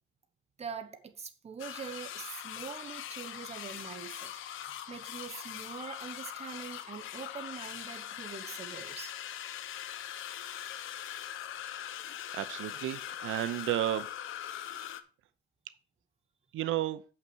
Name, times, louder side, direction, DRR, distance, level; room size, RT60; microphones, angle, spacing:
voice 1, 0.6-9.1, right 6 dB, 30° right, 1.1 m, -44 dB
sound 1, 1.6-15.0, left 11 dB, 85° left, 0.8 m, -42 dB
voice 2, 12.3-14.1 16.5-17.0, right 13 dB, 90° right, 0.7 m, -32 dB
6.8 x 5.9 x 6.1 m
cardioid pair, 135°, 20 cm